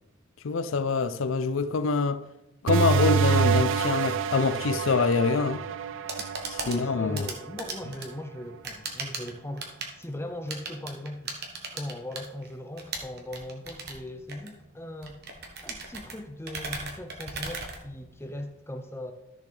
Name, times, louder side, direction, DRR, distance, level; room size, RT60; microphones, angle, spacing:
voice 1, 0.4-2.2 2.6-5.6 6.5-7.3, left 4 dB, 70° left, 0.5 m, -25 dB
sound 1, 2.7-7.9, right 6 dB, 65° right, 0.4 m, -27 dB
sound 2, 5.9-18.4, right 4 dB, 50° right, 1.3 m, -39 dB
voice 2, 6.6-11.3 11.7-15.2 15.6-19.1, left 1 dB, 10° left, 0.6 m, -39 dB
13.5 x 6.7 x 3.3 m
head